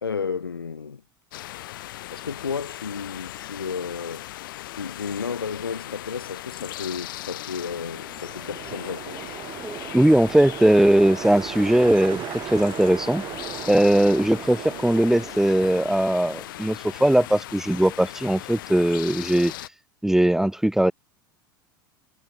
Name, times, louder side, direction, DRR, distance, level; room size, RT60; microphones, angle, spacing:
voice 1, 0.0-1.0 2.1-4.3 4.8-9.2, left 5 dB, 90° left, 1.3 m, -32 dB
sound 1, 1.3-19.7, left 16 dB, 70° left, 2.7 m, -38 dB
sound 2, 7.6-16.7, right 12 dB, 40° right, 7.3 m, -37 dB
voice 2, 9.6-13.2 13.7-19.5 20.0-20.9, right 1 dB, 5° right, 1.0 m, -20 dB
hypercardioid pair, 80°, 12 cm